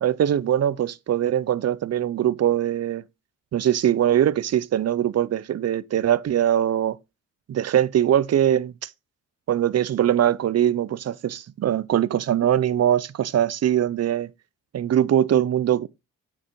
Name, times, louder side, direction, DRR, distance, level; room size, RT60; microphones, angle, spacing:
voice 1, 0.0-3.0 3.5-7.0 7.5-8.9 9.5-14.3 14.7-15.9, right 10 dB, 45° right, 0.5 m, -22 dB
8.8 x 6.6 x 3.0 m
cardioid pair, 80°, 35 cm